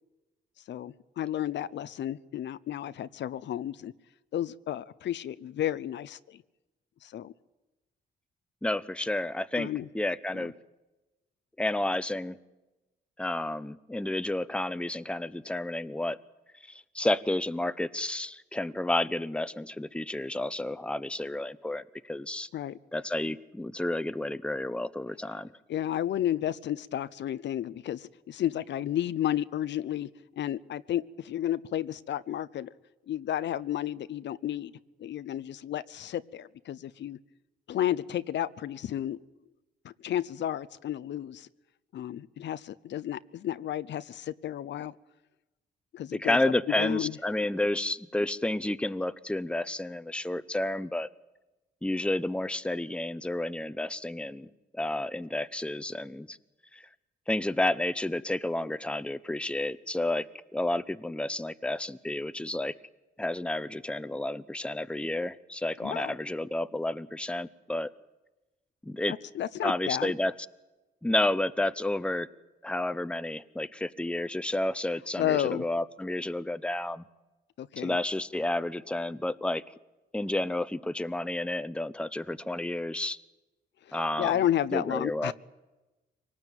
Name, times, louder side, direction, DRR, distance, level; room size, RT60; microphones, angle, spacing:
voice 1, 0.7-3.9 4.3-6.4 7.0-7.3 9.5-9.9 10.3-10.5 22.5-22.8 25.7-30.1 30.4-32.7 33.1-34.7 35.0-37.2 37.7-39.2 39.8-41.5 41.9-44.9 45.9-47.2 65.8-66.1 69.1-70.1 75.2-75.7 77.6-78.0 83.8-85.3, left 11 dB, 70° left, 15 dB, 0.7 m, -32 dB
voice 2, 8.6-9.7 9.9-10.5 11.6-12.4 13.2-16.2 16.7-22.5 22.9-25.5 46.2-51.1 51.8-54.5 54.7-56.4 56.7-56.9 57.3-60.3 60.5-62.7 63.2-67.9 68.8-69.1 69.6-70.3 71.0-72.3 72.6-77.0 77.8-79.6 80.1-83.2 83.9-84.3 84.7-85.3, left 1 dB, 5° left, 14 dB, 0.8 m, -31 dB
24.0 x 18.5 x 9.2 m, 1.1 s
cardioid pair, 75°, 19 cm